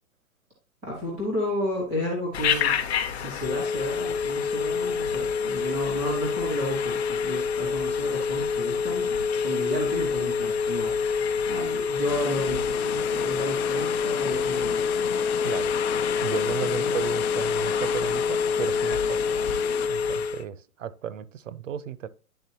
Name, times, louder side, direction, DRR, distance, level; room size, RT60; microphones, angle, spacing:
voice 1, 0.8-2.7 3.1-9.2 9.4-14.9 16.6-16.9, equal, ahead, 0.5 m, -32 dB
Telephone, 2.3-20.4, left 5 dB, 45° left, 0.8 m, -27 dB
sound 1, 12.1-19.9, left 12 dB, 75° left, 0.5 m, -35 dB
voice 2, 15.4-15.7 16.2-19.3 19.9-22.1, right 9 dB, 60° right, 0.7 m, -34 dB
10.0 x 3.6 x 2.8 m
hypercardioid pair, 165°, 44 cm